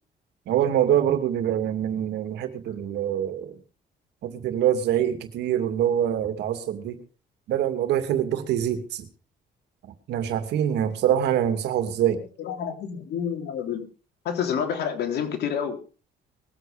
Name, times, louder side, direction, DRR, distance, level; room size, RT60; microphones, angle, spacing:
voice 1, 0.5-3.5 4.2-7.0 7.5-9.1 10.1-12.2, right 10 dB, 80° right, 8 dB, 2.5 m, -24 dB
voice 2, 12.1-13.9 14.2-15.8, left 7 dB, 70° left, 5 dB, 3.5 m, -29 dB
21.0 x 8.2 x 5.1 m, 0.35 s
cardioid pair, 100°, 17 cm